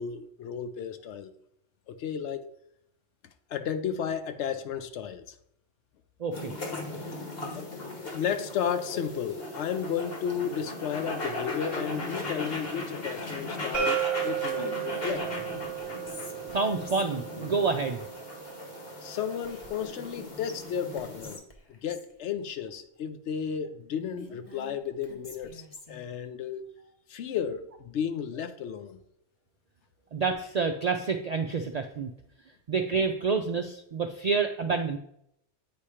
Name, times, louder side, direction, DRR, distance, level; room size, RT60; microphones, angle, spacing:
voice 1, 0.0-1.3 1.9-2.5 3.5-5.3 7.6-7.7 8.1-15.3 19.0-21.4 21.7-26.6 27.1-29.0, left 8 dB, 75° left, 0.9 m, -33 dB
voice 2, 6.2-6.5 7.4-7.5 16.5-18.0 30.1-32.1 32.7-35.0, right 4 dB, 65° right, 0.4 m, -28 dB
sound 1, 6.3-21.4, left 2 dB, 55° left, 1.4 m, -38 dB
sound 2, 13.7-19.5, right 11 dB, 20° right, 0.7 m, -34 dB
Whispering, 14.6-17.4 19.4-20.2 20.5-20.6 21.0-22.1 23.9-26.1, left 3 dB, 35° left, 0.9 m, -47 dB
8.5 x 2.8 x 4.9 m
omnidirectional pair, 1.2 m